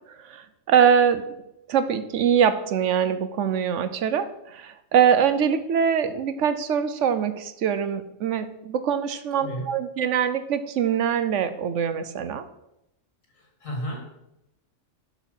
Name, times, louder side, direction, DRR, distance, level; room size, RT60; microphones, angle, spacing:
voice 1, 0.1-1.3 1.7-12.4, right 8 dB, 70° right, 12 dB, 1.0 m, -23 dB
voice 2, 9.3-9.7 13.3-14.0, equal, 85° left, 1 dB, 2.6 m, -33 dB
11.5 x 4.5 x 5.4 m, 0.86 s
omnidirectional pair, 1.4 m